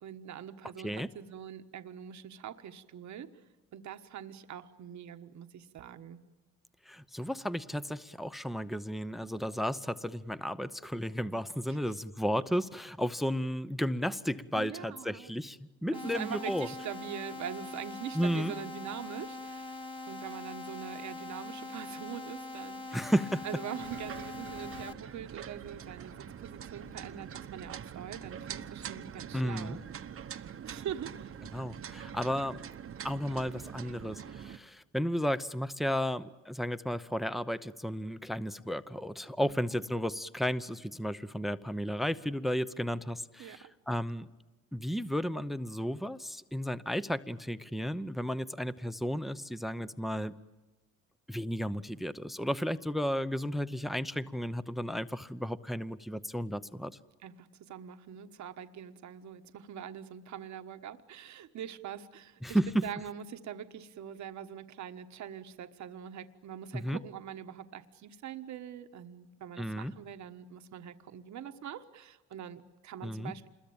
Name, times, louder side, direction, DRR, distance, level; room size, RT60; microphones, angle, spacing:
voice 1, 0.0-3.4 3.7-6.2 11.7-11.8 14.5-15.3 15.9-23.1 23.4-29.8 30.6-31.3 39.5-39.8 43.4-43.7 51.9-52.0 57.2-73.5, right 9 dB, 70° right, 7 dB, 1.4 m, -43 dB
voice 2, 6.9-16.7 18.1-18.6 22.9-23.4 29.3-29.8 31.5-32.6 33.0-44.3 44.7-50.3 51.3-57.0 62.4-62.7 66.7-67.0 69.6-69.9 73.0-73.3, equal, ahead, 14 dB, 0.8 m, -33 dB
sound 1, 15.9-24.9, left 2 dB, 15° left, 1.8 m, -43 dB
sound 2, 23.8-34.6, right 8 dB, 45° right, 1.0 m, -44 dB
27.5 x 22.0 x 8.8 m, 1.2 s
cardioid pair, 90°, 30 cm